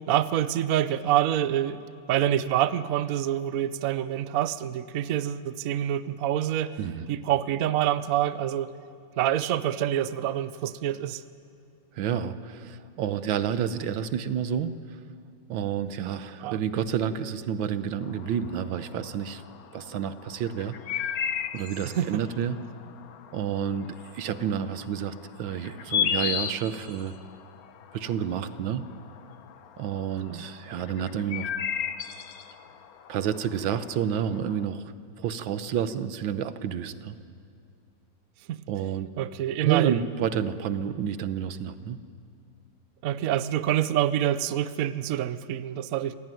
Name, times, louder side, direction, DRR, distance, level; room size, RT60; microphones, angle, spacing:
voice 1, 0.1-1.8 2.1-6.7 7.1-8.7 9.2-11.2 16.4-16.6 21.9-22.2 30.3-30.5 38.5-38.6 39.2-40.0 43.0-46.2, right 11 dB, 60° right, 14 dB, 1.0 m, -26 dB
voice 2, 11.9-15.0 15.5-19.4 19.7-21.1 21.5-22.6 23.3-27.1 27.9-28.8 29.8-31.5 33.1-34.8 35.2-37.2 38.7-39.1 39.6-42.0, right 8 dB, 90° right, 12 dB, 1.7 m, -30 dB
sound 1, 18.0-34.6, left 8 dB, 60° left, 1.2 m, -36 dB
26.0 x 17.0 x 9.2 m, 2.4 s
omnidirectional pair, 2.0 m